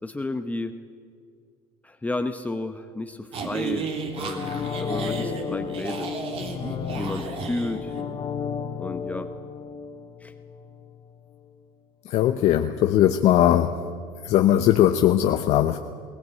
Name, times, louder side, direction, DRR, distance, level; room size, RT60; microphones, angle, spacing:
voice 1, 0.0-0.7 1.8-3.9 4.2-6.1 6.9-7.9 8.8-9.3 10.2-10.3, left 2 dB, 10° left, 7 dB, 1.0 m, -32 dB
sound 1, 3.3-8.0, right 5 dB, 50° right, 3.2 m, -33 dB
sound 2, 4.1-10.9 11.3-11.4, left 6 dB, 45° left, 2.4 m, -33 dB
voice 2, 12.0-13.8 14.2-15.8, left 11 dB, 60° left, 6 dB, 0.9 m, -19 dB
21.0 x 17.5 x 8.5 m, 2.2 s
supercardioid pair, 105°, 12 cm